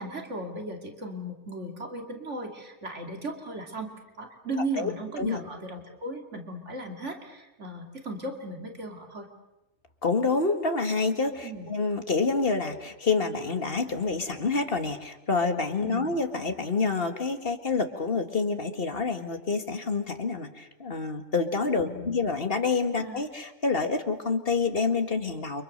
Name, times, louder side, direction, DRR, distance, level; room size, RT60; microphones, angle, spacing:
voice 1, 0.0-3.9 4.2-9.3 11.4-11.7 15.8-16.1 21.8-22.2 23.0-23.2, right 1 dB, 75° right, 3 dB, 3.0 m, -36 dB
voice 2, 10.0-25.6, left 4 dB, 50° left, 6 dB, 2.2 m, -27 dB
29.5 x 25.0 x 6.7 m, 0.99 s
omnidirectional pair, 1.2 m